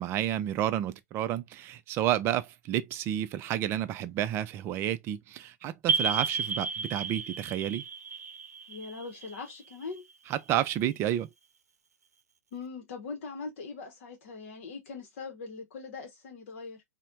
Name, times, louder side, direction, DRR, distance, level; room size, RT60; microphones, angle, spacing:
voice 1, 0.0-7.8 10.3-11.3, right 12 dB, 30° right, 0.4 m, -30 dB
sound 1, 5.9-10.3, right 5 dB, 75° right, 0.6 m, -33 dB
voice 2, 8.7-10.0 12.5-16.8, left 4 dB, 50° left, 0.8 m, -41 dB
4.3 x 2.1 x 2.4 m
figure-of-eight pair, 105°, 9 cm